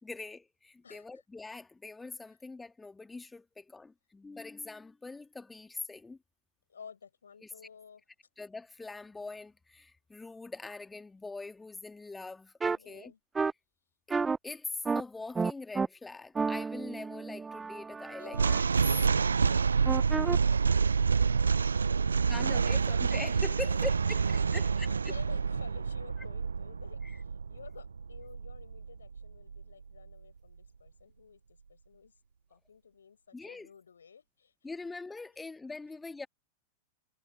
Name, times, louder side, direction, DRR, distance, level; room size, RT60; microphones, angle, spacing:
voice 1, 0.0-6.2 7.4-7.5 8.4-13.1 14.1-14.2 14.4-18.4 22.3-24.2 24.5-24.9 27.0-27.2 33.3-33.7 34.6-36.3, left 3 dB, 10° left, 2.1 m, -43 dB
voice 2, 0.8-1.2 6.7-8.0 12.7-13.2 18.2-18.4 18.8-20.9 21.9-23.1 23.6-23.8 24.3-32.1 32.5-34.5, left 6 dB, 70° left, 6.2 m, -53 dB
sound 1, 12.6-12.8 13.4-13.5 14.1-14.4 14.9-15.0 15.4-15.9 16.4-18.6 19.9-20.4, right 4 dB, 15° right, 0.6 m, -31 dB
sound 2, 18.3-29.6, right 5 dB, 75° right, 0.6 m, -28 dB
figure-of-eight pair, 90°, 0 cm